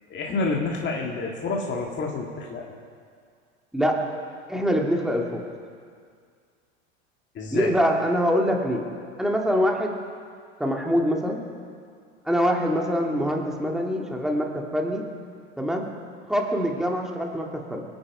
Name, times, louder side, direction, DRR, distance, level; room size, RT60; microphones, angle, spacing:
voice 1, 0.1-2.7 7.3-7.7, left 3 dB, 30° left, -1 dB, 2.0 m, -28 dB
voice 2, 4.5-5.4 7.5-8.9 9.2-10.0 10.6-11.4 12.3-15.0 15.6-15.9 16.3-17.8, equal, ahead, 0 dB, 2.1 m, -24 dB
25.5 x 8.8 x 4.8 m, 2.2 s
hypercardioid pair, 95°, 35 cm